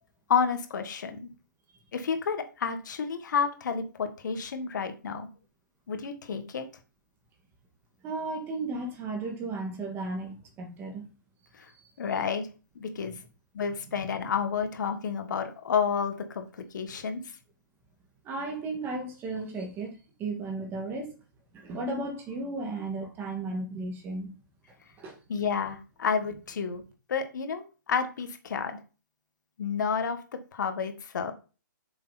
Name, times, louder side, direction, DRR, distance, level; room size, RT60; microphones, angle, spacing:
voice 1, 0.3-1.3 1.9-5.3 5.9-6.6 11.5-11.7 12.0-12.5 12.8-13.1 13.5-17.2 25.3-26.8 27.1-28.8 29.6-30.2 30.5-31.3, left 6 dB, 65° left, 1.8 m, -30 dB
voice 2, 8.0-11.0 14.0-14.1 18.2-21.1 21.6-24.3 25.0-25.2, right 3 dB, 20° right, 2.2 m, -34 dB
8.4 x 6.9 x 4.3 m
hypercardioid pair, 150°, 11 cm